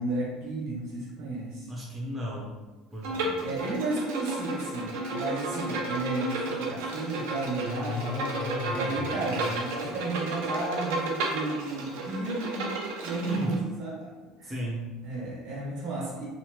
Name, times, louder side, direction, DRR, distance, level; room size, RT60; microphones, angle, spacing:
voice 1, 0.0-1.7 3.4-8.1 8.7-12.7 13.0-14.1 14.4-14.5 15.0-16.3, right 2 dB, 65° right, -4 dB, 1.0 m, -33 dB
voice 2, 1.7-2.6 2.9-3.5 13.2-13.6 14.4-14.9, equal, 10° right, -5 dB, 0.4 m, -35 dB
Bowed string instrument, 3.0-13.6, right 2 dB, 90° right, 0.6 m, -33 dB
sound 1, 7.8-10.3, left 3 dB, 60° left, 0.5 m, -36 dB
2.8 x 2.2 x 3.0 m, 1.3 s
cardioid pair, 175°, 0 cm